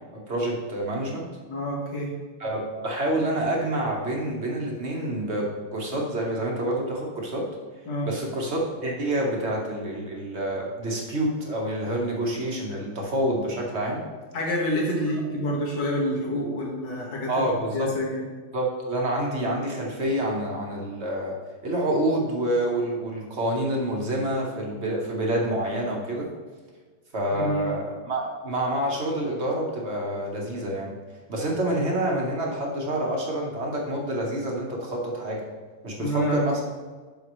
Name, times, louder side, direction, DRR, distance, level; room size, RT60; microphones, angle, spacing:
voice 1, 0.1-1.3 2.4-7.5 8.0-14.0 17.3-17.9 18.5-21.4 21.6-26.3 27.1-30.9 31.3-35.4 35.8-36.6, right 1 dB, 35° right, -1 dB, 1.3 m, -27 dB
voice 2, 1.5-2.1 7.9-8.1 14.3-18.2 27.3-27.7 36.0-36.6, equal, 55° left, -3 dB, 2.3 m, -28 dB
9.5 x 6.5 x 3.1 m, 1.4 s
omnidirectional pair, 2.3 m